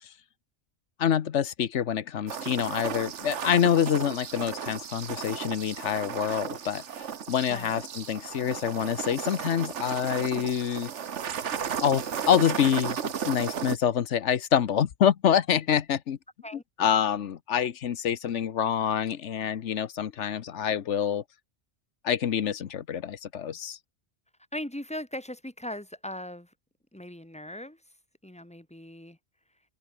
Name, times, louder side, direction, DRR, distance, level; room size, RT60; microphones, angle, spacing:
voice 1, 1.0-6.8 7.3-10.9 11.8-16.2 16.8-21.2 22.0-23.8, left 9 dB, 80° left, 1.2 m, -26 dB
sound 1, 2.3-13.8, right 8 dB, 85° right, 1.4 m, -35 dB
voice 2, 24.5-26.5 26.9-27.8 28.2-29.2, left 1 dB, 5° left, 2.4 m, -39 dB
open air
omnidirectional pair, 1.2 m